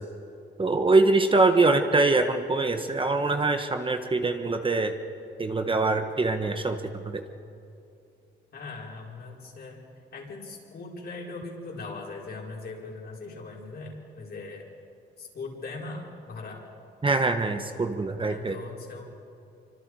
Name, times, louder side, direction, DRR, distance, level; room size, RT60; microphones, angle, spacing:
voice 1, 0.6-4.9 5.4-7.2 17.0-18.6, right 3 dB, 25° right, 6 dB, 1.4 m, -24 dB
voice 2, 8.5-9.8 10.1-14.7 15.2-16.7 18.2-19.0, left 3 dB, 55° left, -2 dB, 5.0 m, -40 dB
26.5 x 25.0 x 4.9 m, 2.6 s
cardioid pair, 90°, 20 cm